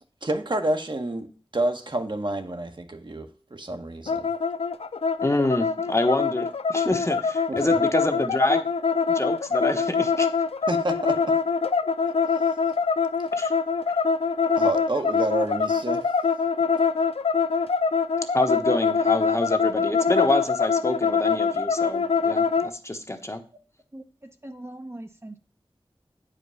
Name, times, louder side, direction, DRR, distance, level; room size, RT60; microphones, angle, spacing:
voice 1, 0.2-4.3 7.5-7.6 10.7-11.3 14.5-16.0, right 1 dB, 50° right, 6 dB, 1.2 m, -29 dB
sound 1, 4.1-22.7, left 5 dB, 75° left, 0.5 m, -24 dB
voice 2, 5.2-8.6 9.1-10.3 13.4-13.5 18.3-23.4, left 1 dB, 30° left, 6 dB, 1.1 m, -27 dB
voice 3, 23.9-25.4, right 1 dB, 25° right, 5 dB, 0.8 m, -41 dB
8.8 x 5.1 x 5.6 m, 0.40 s
wide cardioid pair, 45°, 10 cm